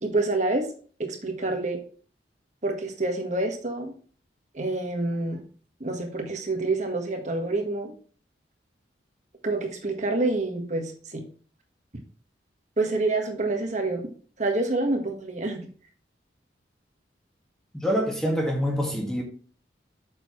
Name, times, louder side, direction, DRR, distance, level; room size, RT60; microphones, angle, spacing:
voice 1, 0.0-0.7 1.0-1.8 2.6-3.9 4.5-5.4 5.8-7.9 9.4-11.2 12.8-14.0 14.4-15.7, right 2 dB, 40° right, 1.4 m, -27 dB
voice 2, 17.7-19.2, equal, 5° left, 1.7 m, -26 dB
6.6 x 6.5 x 3.1 m
head